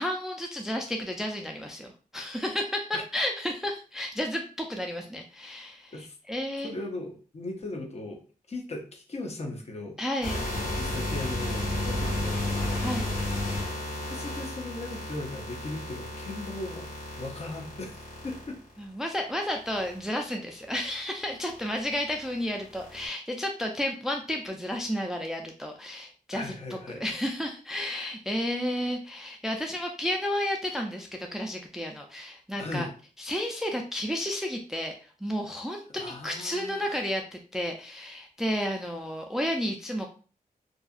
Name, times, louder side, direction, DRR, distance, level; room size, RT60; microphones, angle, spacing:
voice 1, 0.0-6.7 10.0-10.5 12.8-13.2 18.8-32.9 33.2-34.9 35.2-40.1, equal, 5° right, 2 dB, 0.3 m, -32 dB
voice 2, 6.6-8.2 8.5-10.0 10.5-12.9 13.7-16.9 17.2-18.6 26.3-27.1 32.6-32.9 35.9-37.0, left 2 dB, 45° left, 2 dB, 0.7 m, -38 dB
sound 1, 10.2-18.8 19.6-20.1 20.6-20.9 21.3-23.1, left 1 dB, 70° left, 1.2 m, -33 dB
2.6 x 2.4 x 2.4 m, 0.37 s
wide cardioid pair, 110°, 15 cm